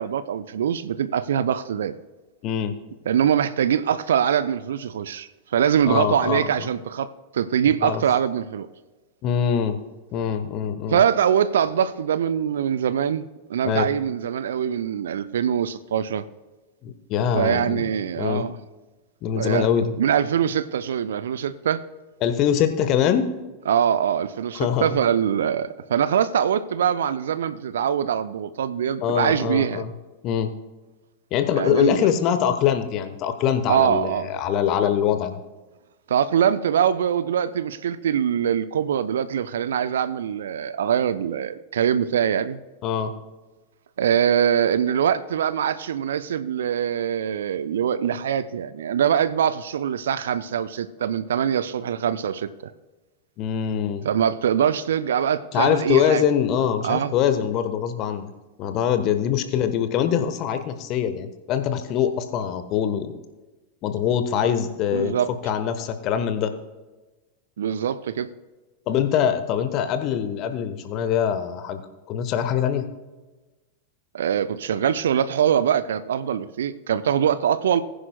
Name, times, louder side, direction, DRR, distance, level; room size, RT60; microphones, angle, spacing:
voice 1, 0.0-1.9 3.1-8.7 10.9-13.2 13.5-16.2 17.3-18.6 19.4-19.7 20.0-21.8 23.7-29.8 31.6-32.0 33.7-34.3 36.1-42.6 44.0-52.7 54.0-56.2 56.8-57.1 64.9-65.3 67.6-68.3 74.1-77.8, right 9 dB, 65° right, 14 dB, 0.5 m, -23 dB
voice 2, 2.4-2.7 5.9-6.7 7.8-8.0 9.2-9.8 10.1-11.0 13.6-13.8 16.8-17.9 18.2-18.5 19.2-19.9 22.2-23.3 24.6-25.0 29.0-29.9 30.2-30.5 31.3-35.4 42.8-43.1 53.4-54.1 55.5-58.3 58.6-63.1 63.8-66.5 68.9-71.8 72.1-72.9, left 9 dB, 40° left, 9 dB, 1.1 m, -23 dB
20.0 x 10.0 x 2.2 m, 1.2 s
figure-of-eight pair, 90°, 0 cm